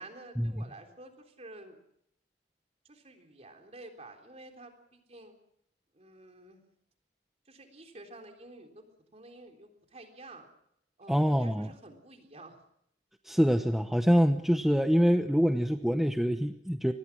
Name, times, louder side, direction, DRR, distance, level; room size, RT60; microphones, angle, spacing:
voice 1, 0.0-1.8 2.8-5.4 5.9-6.6 7.5-8.9 9.1-10.5 11.0-12.6, right 2 dB, 35° right, 4 dB, 3.7 m, -50 dB
voice 2, 11.1-11.7 13.3-16.9, equal, ahead, 7 dB, 0.8 m, -25 dB
25.0 x 20.0 x 6.1 m, 0.73 s
head